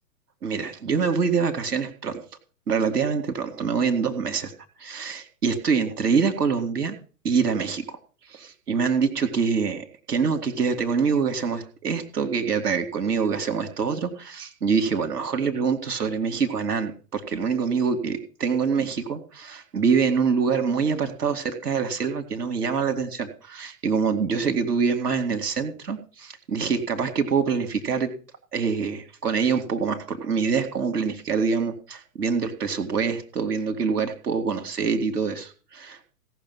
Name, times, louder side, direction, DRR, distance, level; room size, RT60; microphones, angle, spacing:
voice 1, 0.4-2.2 2.7-4.5 4.8-6.9 7.2-8.0 8.3-28.1 28.5-36.1, right 5 dB, 70° right, 6 dB, 2.4 m, -25 dB
17.0 x 6.5 x 5.6 m, 0.37 s
figure-of-eight pair, 110°, 48 cm